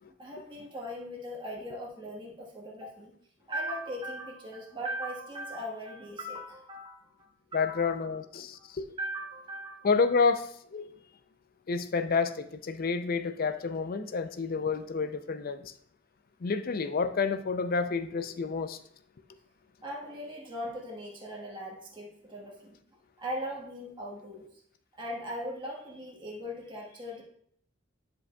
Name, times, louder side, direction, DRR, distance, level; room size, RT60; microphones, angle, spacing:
voice 1, 0.2-3.1 3.5-8.0 8.5-8.7 9.0-9.9 19.8-24.6 25.0-27.2, equal, 25° right, -3 dB, 1.3 m, -39 dB
voice 2, 7.5-8.9 9.8-10.9 11.7-15.7 16.4-18.8, left 4 dB, 45° left, 10 dB, 0.4 m, -29 dB
9.8 x 5.3 x 2.3 m, 0.65 s
head